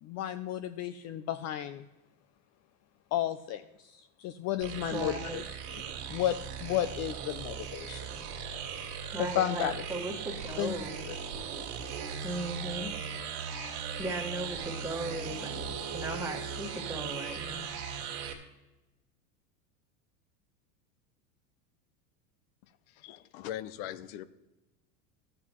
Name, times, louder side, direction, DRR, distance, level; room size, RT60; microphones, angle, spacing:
voice 1, 0.0-1.8 3.1-5.4 5.7-5.8 6.1-8.1 9.2-9.8 10.6-10.7 11.1-11.2, left 11 dB, 40° left, 11 dB, 0.4 m, -33 dB
sound 1, 4.6-18.3, right 6 dB, 70° right, 2.0 m, -38 dB
voice 2, 4.9-5.4 9.1-11.0 12.2-12.9 13.6-15.7 15.9-17.8, right 2 dB, 5° right, 0 dB, 1.5 m, -37 dB
voice 3, 23.0-24.2, left 12 dB, 70° left, 15 dB, 0.7 m, -40 dB
13.5 x 7.7 x 3.0 m, 1.1 s
supercardioid pair, 105°, 44 cm